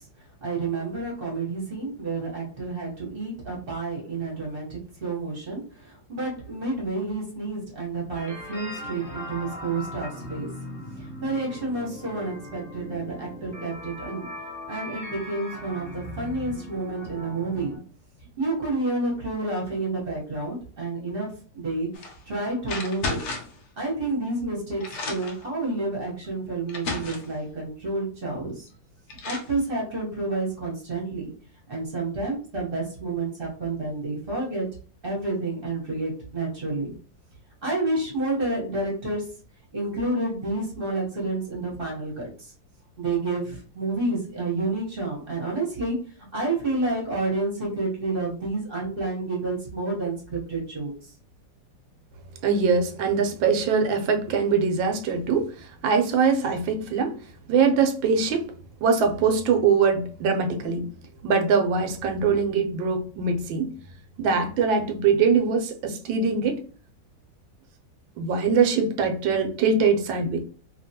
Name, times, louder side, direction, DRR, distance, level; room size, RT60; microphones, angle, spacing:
voice 1, 0.4-10.5 11.2-14.3 14.7-17.7 18.4-21.3 21.5-21.9 22.3-23.2 23.8-28.7 29.2-31.3 31.7-34.7 35.0-36.9 37.6-39.2 39.7-42.3 43.0-46.0 46.3-50.9, right 2 dB, 35° right, -4 dB, 1.1 m, -29 dB
sound 1, 8.1-17.8, left 1 dB, 10° right, 0.4 m, -39 dB
sound 2, 21.9-22.2 22.6-23.6 24.4-24.5 24.8-25.4 26.2-26.3 26.7-27.3 28.7-28.8 29.1-29.5, left 3 dB, 75° left, 0.6 m, -33 dB
voice 2, 52.4-57.2 57.5-58.5 58.8-60.9 61.2-63.7 64.2-66.6 68.2-70.4, right 5 dB, 90° right, 5 dB, 1.4 m, -22 dB
2.9 x 2.8 x 2.7 m, 0.40 s
omnidirectional pair, 2.0 m